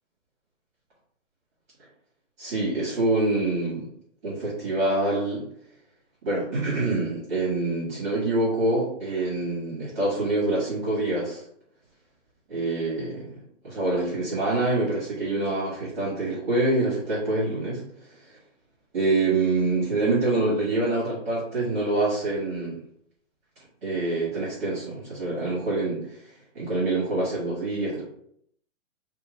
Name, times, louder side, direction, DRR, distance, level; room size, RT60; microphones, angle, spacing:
voice 1, 2.4-3.9 4.2-5.5 6.2-11.4 12.5-13.3 13.6-17.8 18.9-22.8 23.8-26.2 26.5-28.0, right 2 dB, 10° right, -7 dB, 0.8 m, -26 dB
4.3 x 2.3 x 4.1 m, 0.67 s
hypercardioid pair, 180°, 38 cm